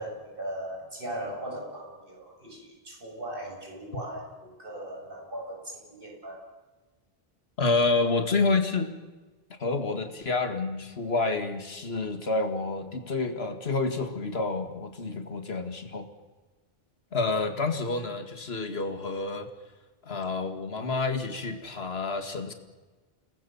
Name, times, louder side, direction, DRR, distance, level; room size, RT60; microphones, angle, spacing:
voice 1, 0.0-6.4, right 1 dB, 60° right, -1 dB, 7.8 m, -38 dB
voice 2, 7.6-8.9 9.5-16.1 17.1-19.5 20.0-22.5, left 3 dB, 80° left, 7 dB, 2.2 m, -28 dB
29.5 x 20.0 x 7.2 m, 1.2 s
omnidirectional pair, 1.0 m